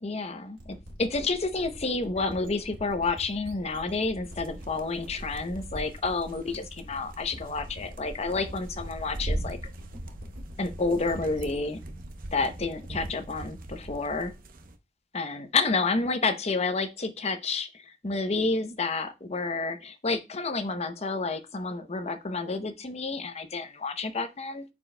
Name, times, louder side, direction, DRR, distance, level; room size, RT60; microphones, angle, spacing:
voice 1, 0.0-9.6 10.6-11.8 12.3-14.3 15.1-24.6, left 3 dB, 35° left, 9 dB, 0.8 m, -30 dB
sound 1, 0.6-13.2, equal, 90° right, 2.4 m, -45 dB
sound 2, 4.2-14.7, right 1 dB, 50° right, 0.8 m, -40 dB
13.0 x 4.5 x 2.2 m, 0.25 s
head